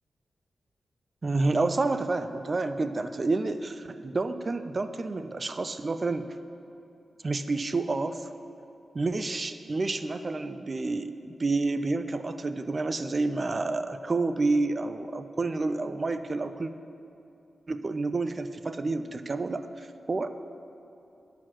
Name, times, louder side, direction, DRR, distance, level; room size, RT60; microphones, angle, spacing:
voice 1, 1.2-6.3 7.2-8.3 8.9-16.7 17.7-20.3, right 3 dB, 45° right, 11 dB, 0.4 m, -29 dB
10.5 x 4.7 x 6.0 m, 2.7 s
cardioid pair, 60°, 0 cm